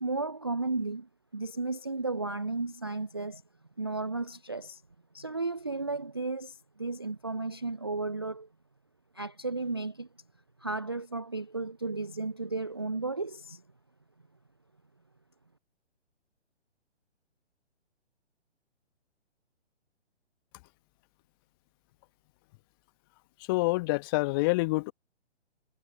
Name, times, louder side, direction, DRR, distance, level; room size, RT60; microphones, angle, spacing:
voice 1, 0.0-3.4 3.8-4.8 5.1-8.5 9.1-10.1 10.6-13.6, right 3 dB, 25° right, 0.3 m, -34 dB
voice 2, 23.5-24.9, left 24 dB, 20° left, 0.9 m, -27 dB
figure-of-eight pair, 130°, 35 cm